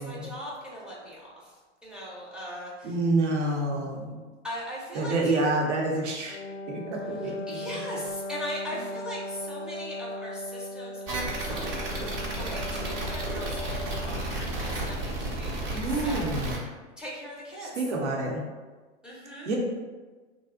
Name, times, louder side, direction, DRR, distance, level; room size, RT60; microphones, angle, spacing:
voice 1, 0.0-3.0 4.4-5.4 7.1-16.3 17.0-17.7 19.0-19.5, equal, 5° right, -7 dB, 0.4 m, -40 dB
voice 2, 2.8-4.2 4.9-6.4 6.7-7.6 15.7-16.5 17.8-18.4 19.5-19.6, right 2 dB, 75° right, -1 dB, 0.8 m, -28 dB
Wind instrument woodwind instrument, 6.3-14.5, left 1 dB, 85° left, 0.5 m, -38 dB
sound 1, 11.1-16.6, right 1 dB, 35° right, 0.9 m, -32 dB
2.4 x 2.0 x 3.6 m, 1.3 s
hypercardioid pair, 120°, 35 cm